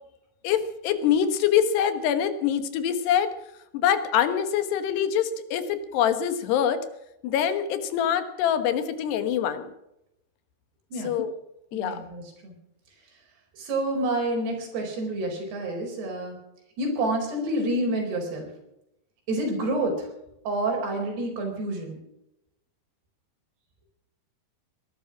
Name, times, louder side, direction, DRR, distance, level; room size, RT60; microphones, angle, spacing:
voice 1, 0.4-3.3 3.7-6.8 7.2-9.7 11.0-11.3 11.7-12.0, left 9 dB, 85° left, 10 dB, 3.4 m, -24 dB
voice 2, 11.7-12.6 13.5-16.4 16.8-18.5 19.3-20.1 20.4-22.0, right 1 dB, 80° right, 1 dB, 6.6 m, -28 dB
20.0 x 12.0 x 6.0 m, 0.84 s
omnidirectional pair, 4.7 m